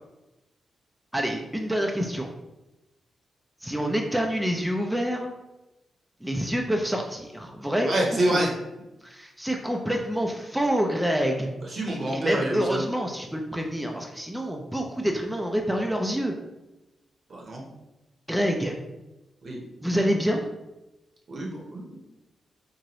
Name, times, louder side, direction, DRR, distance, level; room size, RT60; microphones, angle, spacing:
voice 1, 1.1-2.3 3.6-5.3 6.2-8.4 9.0-11.5 12.1-16.3 18.3-18.8 19.8-20.5, equal, 5° right, 1 dB, 0.5 m, -27 dB
voice 2, 7.8-8.5 11.6-12.8 17.3-17.6 19.4-19.6 21.3-22.0, right 1 dB, 60° right, -1 dB, 0.9 m, -27 dB
2.8 x 2.5 x 3.0 m, 0.99 s
supercardioid pair, 45°, 0 cm